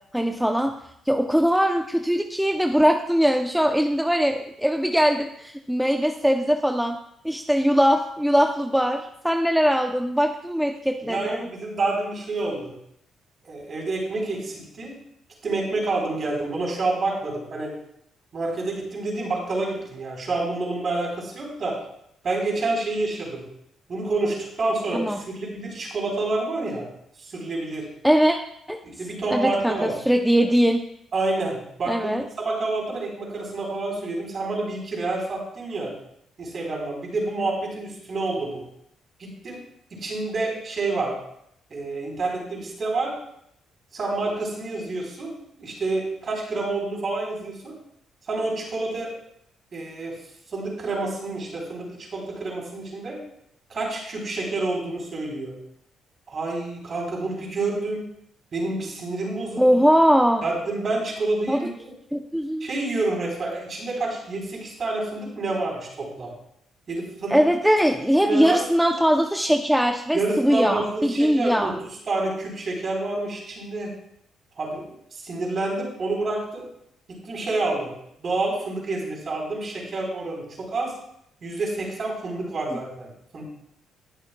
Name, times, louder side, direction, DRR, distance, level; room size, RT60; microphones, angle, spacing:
voice 1, 0.1-0.7 1.1-7.0 7.2-11.4 24.9-25.2 28.0-28.4 28.7-28.8 29.3-30.8 31.9-32.2 59.6-60.4 61.5-61.6 62.1-62.7 67.3-71.7, equal, ahead, 4 dB, 0.6 m, -21 dB
voice 2, 11.0-12.7 13.4-14.9 15.4-17.7 18.3-21.8 22.2-23.4 23.9-26.9 27.2-27.9 28.8-30.0 31.1-32.2 32.4-35.9 36.4-38.6 39.2-39.6 39.9-41.2 41.7-43.1 43.9-45.3 45.6-47.7 48.3-49.1 49.7-50.2 50.5-53.2 53.7-55.5 56.3-58.0 58.5-59.8 60.4-61.9 62.6-66.3 66.9-67.4 68.2-68.6 70.1-71.8 72.1-73.9 74.6-74.8 75.1-76.7 77.1-77.9 78.2-80.9 81.4-83.4, right 2 dB, 45° right, -1 dB, 4.1 m, -28 dB
20.0 x 6.7 x 2.3 m, 0.73 s
cardioid pair, 90°, 0 cm